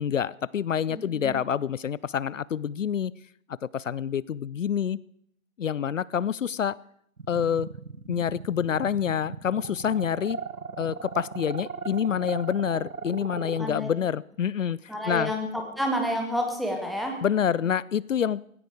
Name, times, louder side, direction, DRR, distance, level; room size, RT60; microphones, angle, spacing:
voice 1, 0.0-3.1 3.7-5.0 5.6-6.8 7.3-7.7 8.1-10.4 10.8-14.8 15.1-15.3 17.2-18.4, left 8 dB, 65° left, 22 dB, 0.6 m, -27 dB
voice 2, 0.9-1.3 13.6-13.9 14.9-17.2, equal, ahead, 2 dB, 0.7 m, -29 dB
sound 1, 7.2-13.8, right 5 dB, 85° right, 1.2 m, -37 dB
17.5 x 17.0 x 4.9 m, 0.69 s
figure-of-eight pair, 135°, 42 cm